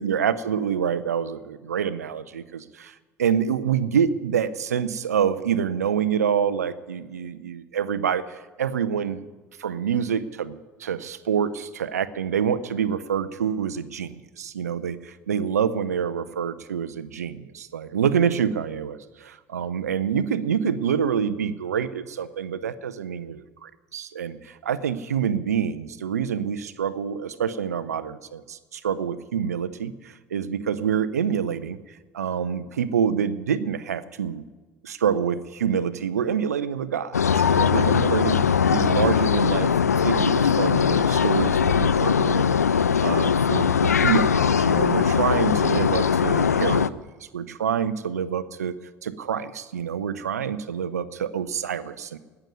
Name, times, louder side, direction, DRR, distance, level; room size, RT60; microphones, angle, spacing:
voice 1, 0.0-9.3 9.6-31.8 32.1-34.4 34.8-38.4 38.7-39.7 40.0-47.0 47.3-52.2, right 8 dB, 85° right, 15 dB, 0.6 m, -27 dB
sound 1, 37.1-46.9, left 7 dB, 90° left, 0.3 m, -20 dB
18.0 x 7.0 x 9.4 m, 1.3 s
figure-of-eight pair, 60°, 8 cm